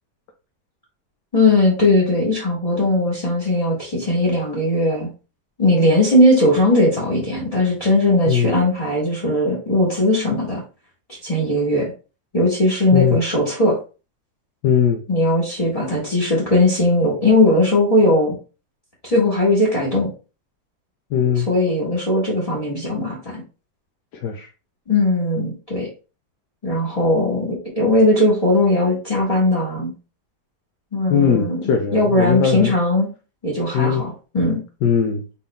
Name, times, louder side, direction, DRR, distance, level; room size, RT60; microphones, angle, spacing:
voice 1, 1.3-5.1 5.6-10.6 11.1-11.9 12.3-13.8 15.1-18.4 19.0-20.1 21.3-23.4 24.9-25.9 26.6-29.9 30.9-31.6 31.9-33.1 33.4-34.6, left 1 dB, 20° left, -5 dB, 1.6 m, -18 dB
voice 2, 8.3-8.6 12.9-13.2 14.6-15.0 21.1-21.5 24.1-24.5 31.1-32.7 33.7-34.0 34.8-35.2, left 7 dB, 85° left, 3 dB, 1.3 m, -19 dB
4.2 x 3.7 x 3.4 m, 0.33 s
omnidirectional pair, 1.8 m